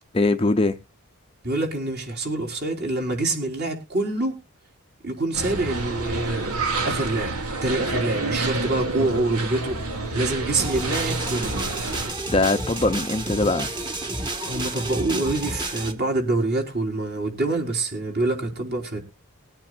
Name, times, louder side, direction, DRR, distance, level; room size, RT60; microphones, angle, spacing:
voice 1, 0.1-0.8 12.3-13.7, left 2 dB, 25° left, 0.6 m, -21 dB
voice 2, 1.4-4.4 5.0-6.5 6.8-7.4 7.6-9.8 10.1-11.6 14.5-19.0, right 2 dB, 45° right, 4.4 m, -26 dB
sound 1, 5.3-12.1, right 3 dB, 90° right, 2.6 m, -28 dB
sound 2, 10.6-15.9, right 2 dB, 20° right, 1.5 m, -30 dB
21.5 x 8.9 x 2.5 m
head